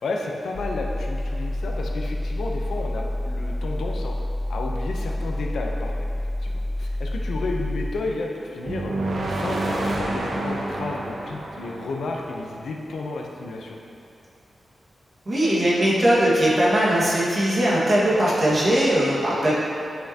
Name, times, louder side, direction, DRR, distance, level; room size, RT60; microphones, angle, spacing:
voice 1, 0.0-4.2 4.5-5.9 6.4-9.0 9.3-13.8, left 3 dB, 90° left, 0 dB, 0.8 m, -32 dB
sound 1, 0.5-7.9, left 1 dB, 35° left, 0.5 m, -28 dB
sound 2, 8.6-12.7, right 1 dB, 50° right, 0.8 m, -29 dB
voice 2, 15.2-19.6, right 1 dB, 30° right, -7 dB, 1.7 m, -20 dB
10.5 x 5.6 x 2.9 m, 2.5 s
wide cardioid pair, 155°, 0 cm